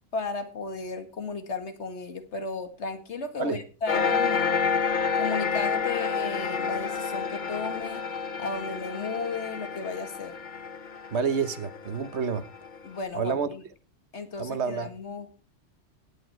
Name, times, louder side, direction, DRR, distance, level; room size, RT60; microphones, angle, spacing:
voice 1, 0.1-4.6 5.1-8.1 8.4-10.3 12.8-13.6 14.1-15.3, left 4 dB, 70° left, 2.0 m, -34 dB
sound 1, 3.9-12.9, left 5 dB, 45° left, 0.9 m, -29 dB
voice 2, 11.1-12.4 13.1-13.5 14.4-14.9, right 6 dB, 65° right, 1.3 m, -28 dB
17.5 x 8.7 x 4.5 m
omnidirectional pair, 1.2 m